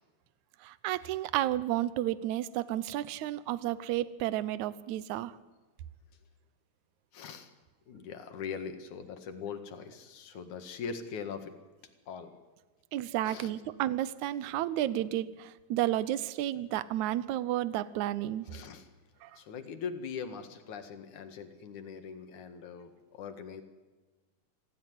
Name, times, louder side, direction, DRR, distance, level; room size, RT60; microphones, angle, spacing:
voice 1, 0.6-5.3 12.9-18.5 19.2-19.3, right 13 dB, 75° right, 16 dB, 1.8 m, -32 dB
voice 2, 7.1-7.5 7.9-11.5 12.1-12.4 13.2-13.5 18.5-18.9 19.3-23.6, left 6 dB, 60° left, 7 dB, 3.0 m, -41 dB
26.0 x 15.0 x 9.6 m, 1.2 s
omnidirectional pair, 4.3 m